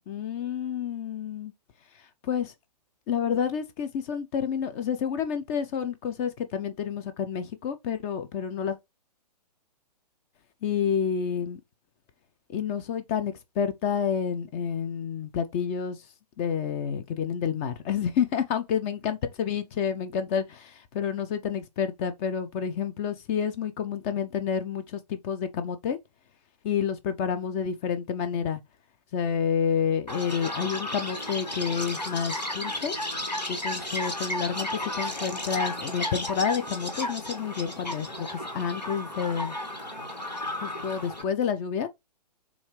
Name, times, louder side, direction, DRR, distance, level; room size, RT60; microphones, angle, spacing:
voice 1, 0.1-1.5 2.2-2.5 3.1-8.8 10.6-11.6 12.5-16.0 16.4-26.0 26.6-28.6 29.1-33.0 33.5-39.5 40.6-41.9, left 7 dB, 20° left, 0.4 m, -29 dB
Chirp tweet, 30.1-41.2, left 1 dB, 80° left, 1.7 m, -33 dB
6.9 x 2.5 x 3.1 m
figure-of-eight pair, 120°, 21 cm